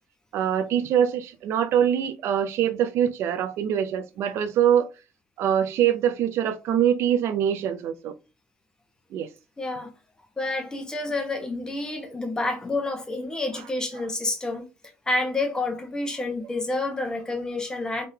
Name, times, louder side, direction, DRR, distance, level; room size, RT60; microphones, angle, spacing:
voice 1, 0.3-4.9 5.4-8.1 9.1-9.3, right 9 dB, 70° right, 0.5 m, -23 dB
voice 2, 9.6-9.9 10.4-14.6 15.1-18.1, left 2 dB, 15° left, 1.1 m, -29 dB
3.7 x 3.6 x 2.8 m
cardioid pair, 145°, 5 cm